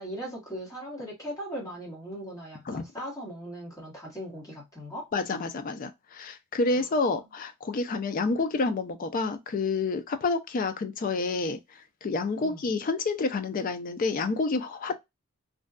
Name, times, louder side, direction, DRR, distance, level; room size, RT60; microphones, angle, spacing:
voice 1, 0.0-5.1 6.7-7.3 12.4-12.6, equal, 15° left, 1.0 m, -39 dB
voice 2, 5.1-11.6 12.0-15.0, left 3 dB, 40° left, 0.3 m, -29 dB
2.5 x 2.2 x 2.3 m
head